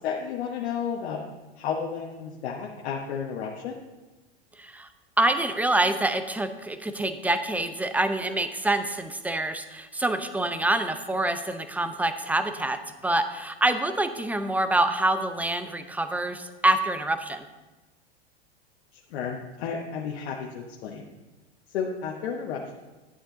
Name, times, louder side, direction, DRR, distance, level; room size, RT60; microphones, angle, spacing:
voice 1, 0.0-1.2 1.6-3.8 19.1-21.0 21.7-22.7, left 7 dB, 70° left, -1 dB, 1.3 m, -32 dB
voice 2, 4.6-4.9 5.2-17.4, right 2 dB, 5° right, 9 dB, 0.6 m, -26 dB
11.0 x 8.0 x 3.9 m, 1.2 s
hypercardioid pair, 110°, 33 cm